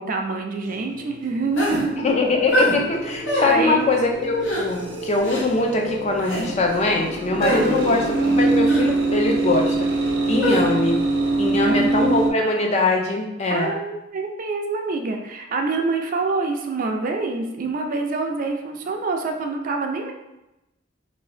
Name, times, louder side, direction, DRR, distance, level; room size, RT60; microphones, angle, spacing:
voice 1, 0.0-2.0 3.4-3.9 7.5-7.8 10.3-10.7 11.6-11.9 13.5-20.1, right 3 dB, 45° right, 4 dB, 0.4 m, -26 dB
sound 1, 0.7-12.3, right 2 dB, 80° right, 0.7 m, -24 dB
sound 2, 1.6-1.8 2.5-2.8 3.3-3.5 4.4-4.6 5.2-5.4 6.2-6.5 7.4-7.6 8.6-8.9 10.4-10.6, right 1 dB, 75° left, 1.0 m, -23 dB
voice 2, 2.0-8.0 8.4-9.7 10.3-11.0 11.4-13.7, left 2 dB, 35° left, 1 dB, 0.4 m, -22 dB
2.7 x 2.7 x 3.2 m, 0.94 s
head